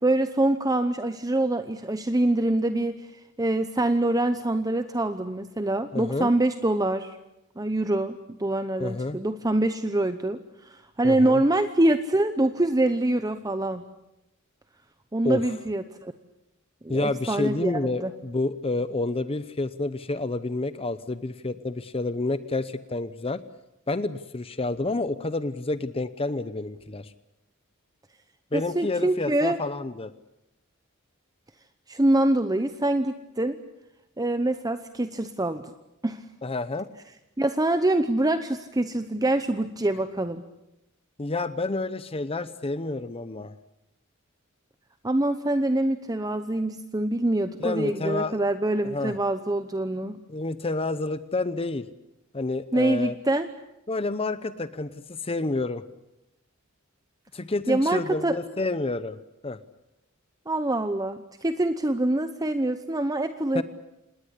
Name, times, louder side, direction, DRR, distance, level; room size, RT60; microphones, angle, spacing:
voice 1, 0.0-3.0 3.4-7.2 7.6-13.8 15.1-16.1 16.8-18.1 28.5-29.6 31.9-33.6 34.2-35.6 36.0-36.2 37.4-40.4 45.0-50.2 52.7-53.5 57.7-58.4 60.5-63.6, right 1 dB, 20° right, 9 dB, 0.8 m, -25 dB
voice 2, 5.9-6.3 8.8-9.2 11.0-11.4 15.2-15.4 16.9-23.4 23.9-27.1 28.5-30.1 36.4-36.9 41.2-43.5 47.6-48.4 48.8-49.1 50.3-51.9 52.3-53.1 53.9-55.8 57.3-59.2 59.4-59.6 63.5-63.6, left 2 dB, 30° left, 13 dB, 0.8 m, -29 dB
27.0 x 20.0 x 8.3 m, 0.91 s
head